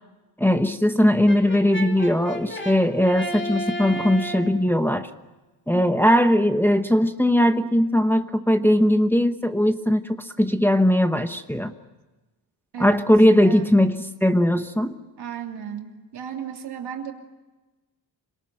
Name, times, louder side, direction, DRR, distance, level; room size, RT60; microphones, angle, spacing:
voice 1, 0.4-5.1 5.7-11.7 12.8-14.9, equal, 5° left, 7 dB, 1.0 m, -19 dB
Brass instrument, 1.3-4.6, equal, 30° left, 2.8 m, -32 dB
voice 2, 12.7-13.6 15.2-17.1, right 8 dB, 75° right, 3 dB, 3.0 m, -35 dB
26.5 x 19.0 x 9.1 m, 1.1 s
cardioid pair, 125°, 40 cm